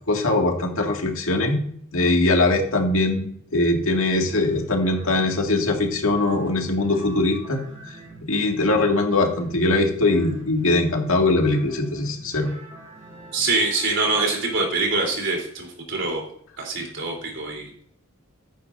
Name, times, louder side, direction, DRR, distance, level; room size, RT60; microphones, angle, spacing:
voice 1, 0.1-1.6 1.9-3.3 3.5-7.6 8.2-12.5, left 2 dB, 75° left, 1 dB, 2.1 m, -21 dB
sound 1, 4.2-14.7, right 3 dB, 35° right, 4.0 m, -44 dB
voice 2, 13.3-16.2 16.6-17.8, right 3 dB, 60° right, 1 dB, 3.5 m, -24 dB
15.0 x 10.0 x 2.7 m, 0.65 s
head